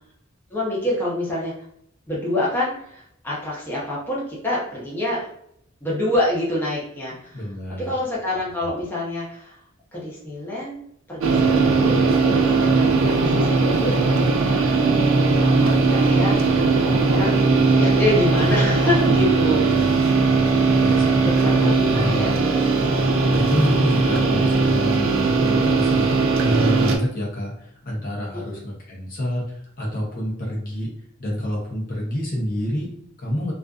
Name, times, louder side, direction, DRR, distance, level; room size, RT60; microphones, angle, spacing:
voice 1, 0.5-1.5 2.1-5.3 5.8-7.4 7.8-9.6 9.9-10.8 11.1-12.0 12.3-14.0 14.4-14.8 15.3-19.7 20.0-20.1 21.1-22.3 28.3-28.6, left 1 dB, 10° left, -6 dB, 0.7 m, -27 dB
voice 2, 7.3-7.9 20.7-22.4 23.3-26.1 26.4-30.9 31.2-33.5, equal, 45° left, -4 dB, 0.7 m, -27 dB
sound 1, 11.2-27.0, right 3 dB, 85° right, 0.4 m, -19 dB
2.5 x 2.4 x 2.3 m, 0.71 s
head